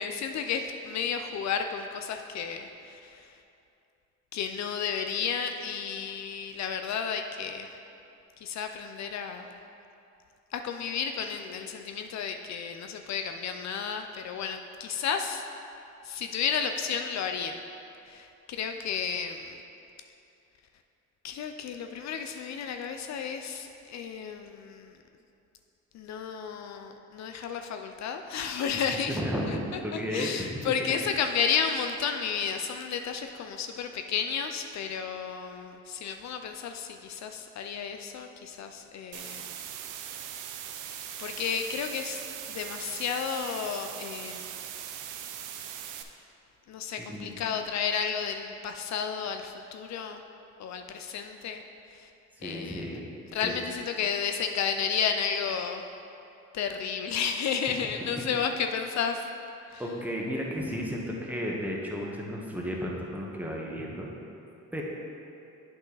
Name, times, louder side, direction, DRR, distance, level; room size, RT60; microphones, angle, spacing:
voice 1, 0.0-3.3 4.3-7.7 8.4-9.6 10.5-15.4 16.0-17.6 18.0-19.6 21.2-25.0 25.9-29.2 29.5-29.6 29.9-39.5 40.3-40.5 41.2-42.2 42.5-44.6 46.7-50.2 50.6-51.6 51.9-52.1 52.4-53.0 53.3-55.9 56.5-59.3 59.7-59.8, left 7 dB, 65° left, 6 dB, 0.5 m, -32 dB
voice 2, 29.1-30.5 47.0-47.3 52.4-53.1 53.4-53.5 59.8-64.1 64.7-64.8, equal, 5° right, -2 dB, 1.2 m, -33 dB
sound 1, 39.1-46.0, right 9 dB, 85° right, 0.6 m, -40 dB
8.2 x 5.6 x 3.9 m, 2.7 s
cardioid pair, 90°, 30 cm